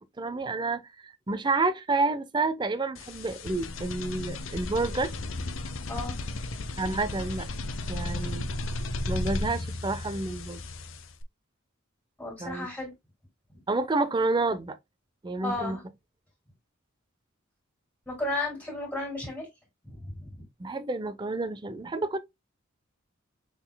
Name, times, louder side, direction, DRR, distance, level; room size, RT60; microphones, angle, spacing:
voice 1, 0.0-5.1 6.8-7.5 7.9-8.5 9.1-10.6 12.4-12.7 13.7-14.8 15.2-15.8 20.6-22.2, right 3 dB, 20° right, 0.5 m, -29 dB
sound 1, 2.9-11.2, left 2 dB, 70° left, 0.7 m, -34 dB
voice 2, 12.2-12.9 15.4-15.8 18.1-19.5 19.8-20.4, left 2 dB, 5° left, 2.6 m, -34 dB
6.1 x 3.9 x 2.2 m
head